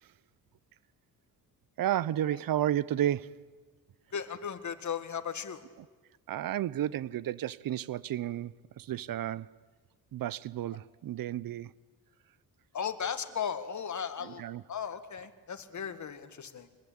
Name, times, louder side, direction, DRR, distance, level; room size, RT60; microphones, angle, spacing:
voice 1, 1.8-3.5 6.3-9.6 10.1-11.7 14.2-14.6, right 12 dB, 60° right, 0.7 m, -32 dB
voice 2, 4.1-5.6 12.7-14.4 14.7-16.7, left 7 dB, 50° left, 2.1 m, -36 dB
25.5 x 20.5 x 8.8 m
cardioid pair, 90°, 38 cm